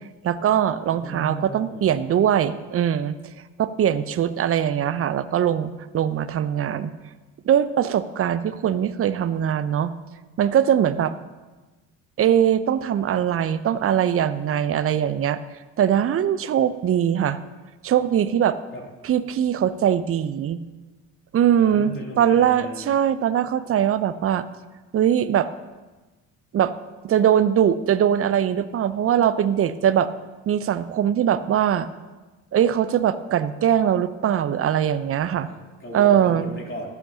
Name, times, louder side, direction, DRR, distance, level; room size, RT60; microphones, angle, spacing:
voice 1, 0.2-3.1 3.6-6.9 7.4-9.9 10.4-11.1 12.2-15.4 15.8-17.4 17.8-18.6 19.0-20.6 21.3-24.4 24.9-25.5 26.5-26.7 27.0-30.1 30.5-31.9 32.5-35.5 35.9-36.5, right 9 dB, 35° right, 15 dB, 0.6 m, -21 dB
voice 2, 0.9-1.8 18.7-18.8 21.6-22.9 35.4-36.9, right 1 dB, 30° left, -2 dB, 3.1 m, -36 dB
14.0 x 10.5 x 2.8 m, 1.2 s
hypercardioid pair, 50°, 40 cm